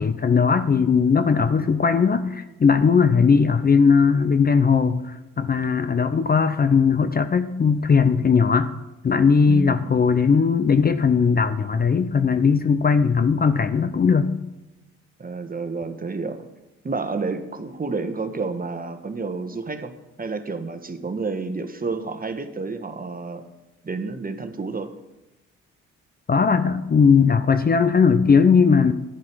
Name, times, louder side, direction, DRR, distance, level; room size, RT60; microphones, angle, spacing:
voice 1, 0.0-8.7 9.0-14.3 26.3-28.9, left 5 dB, 30° left, 11 dB, 0.7 m, -18 dB
voice 2, 9.5-9.9 15.2-16.5 16.8-19.9 20.2-23.4 23.8-24.9, right 4 dB, 25° right, 9 dB, 1.4 m, -30 dB
10.5 x 10.5 x 4.7 m, 0.97 s
hypercardioid pair, 50°, 33 cm